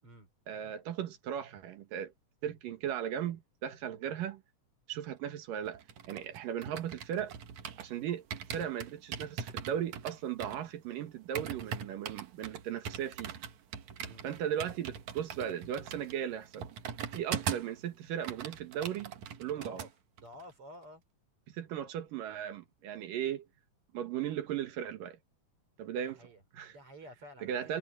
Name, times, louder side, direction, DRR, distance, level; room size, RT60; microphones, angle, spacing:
voice 1, 0.5-2.1 2.4-4.4 4.9-5.8 6.1-7.3 7.8-8.3 8.5-13.4 14.2-16.7 17.1-19.1 19.4-19.8 21.5-23.5 23.9-25.2 25.8-26.2 26.5-26.7 27.4-27.8, right 9 dB, 85° right, 3.2 m, -37 dB
sound 1, 5.7-7.9 8.3-17.8 18.1-19.9 20.2-20.5, right 8 dB, 65° right, 2.8 m, -41 dB
voice 2, 19.5-19.9 20.2-21.0 26.0-26.4 26.7-27.8, equal, 40° right, 6.1 m, -51 dB
omnidirectional pair, 3.8 m